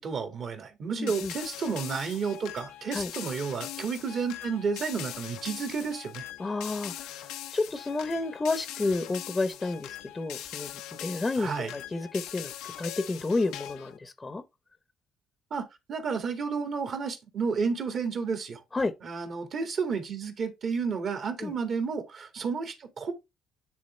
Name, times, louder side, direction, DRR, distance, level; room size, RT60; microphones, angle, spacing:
voice 1, 0.0-6.2 11.4-11.7 15.5-18.6 19.0-23.1, right 5 dB, 55° right, 1.9 m, -31 dB
voice 2, 1.0-1.3 2.9-3.1 6.4-10.7 11.0-12.5 12.8-14.4 18.7-18.9 21.4-21.5, left 3 dB, 25° left, 0.8 m, -31 dB
sound 1, 1.1-14.0, left 12 dB, 85° left, 0.7 m, -41 dB
9.8 x 3.6 x 3.1 m
supercardioid pair, 75°, 0 cm